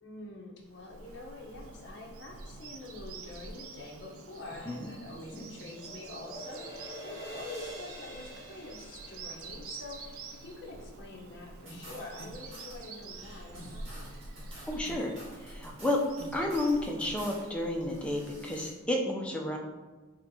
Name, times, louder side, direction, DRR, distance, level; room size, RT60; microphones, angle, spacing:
voice 1, 0.0-14.2, left 2 dB, 55° left, -2 dB, 0.7 m, -46 dB
Bird vocalization bird call bird song, 0.7-18.7, right 3 dB, 90° right, 0.4 m, -47 dB
sound 1, 5.0-11.1, equal, 50° right, 1.4 m, -47 dB
sound 2, 11.7-12.7 13.1-17.4 17.8-18.7, right 1 dB, 70° right, 1.5 m, -49 dB
voice 2, 14.7-15.1 15.4-16.0 16.3-19.6, left 1 dB, 5° left, 0 dB, 0.4 m, -31 dB
4.3 x 3.4 x 2.7 m, 1.3 s
head